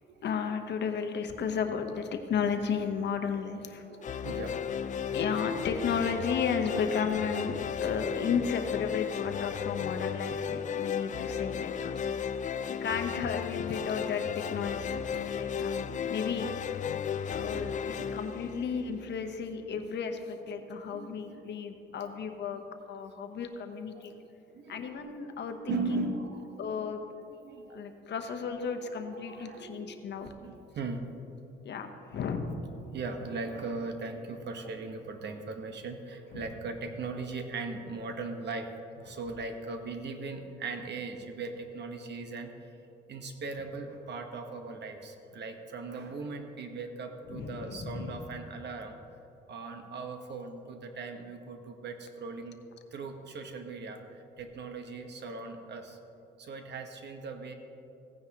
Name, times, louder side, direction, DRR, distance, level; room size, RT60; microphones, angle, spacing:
voice 1, 0.2-3.8 5.1-12.0 12.7-16.8 17.3-22.6 22.9-24.1 24.7-26.1 26.6-27.0 27.7-30.3 31.6-32.6 36.3-36.4 47.3-48.2, left 6 dB, 60° left, 6 dB, 1.0 m, -34 dB
voice 2, 3.8-5.3 6.9-7.2 11.3-11.7 12.3-12.8 13.9-14.0 15.5-16.4 18.0-18.8 20.9-21.5 23.9-24.3 24.5-24.9 25.6-26.6 27.4-27.9 28.7-30.0 30.4-31.1 32.9-38.7 39.0-42.7 43.1-49.0 49.5-52.6 52.9-56.0 56.4-57.5, right 3 dB, 60° right, 5 dB, 1.2 m, -39 dB
sound 1, 4.0-19.3, left 7 dB, 40° left, 0.4 m, -34 dB
16.0 x 9.7 x 2.9 m, 2.9 s
cardioid pair, 90°, 20 cm